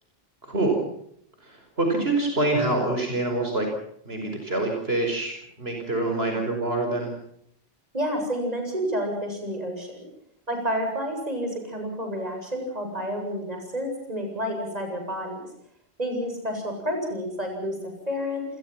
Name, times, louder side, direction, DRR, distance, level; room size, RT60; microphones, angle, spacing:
voice 1, 0.5-0.8 1.4-3.7 4.1-5.3 5.6-7.1, right 2 dB, 75° right, 3 dB, 5.5 m, -25 dB
voice 2, 7.9-10.0 10.5-15.5 16.0-17.8 18.1-18.4, equal, 40° right, 3 dB, 8.0 m, -29 dB
28.5 x 21.5 x 6.0 m, 0.71 s
omnidirectional pair, 1.1 m